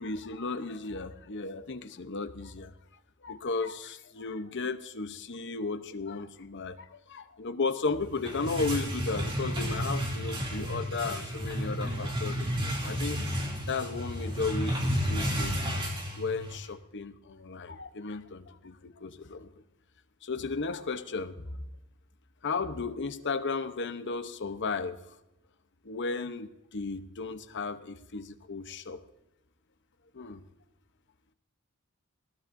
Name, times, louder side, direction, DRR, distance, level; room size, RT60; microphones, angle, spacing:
voice 1, 0.0-2.7 3.2-15.6 16.2-19.5 20.2-21.6 22.4-25.0 25.8-29.0 30.1-30.4, left 4 dB, 55° left, 10 dB, 0.9 m, -35 dB
sound 1, 8.0-16.7, equal, 25° right, 2.8 m, -32 dB
20.0 x 15.5 x 2.7 m, 0.92 s
head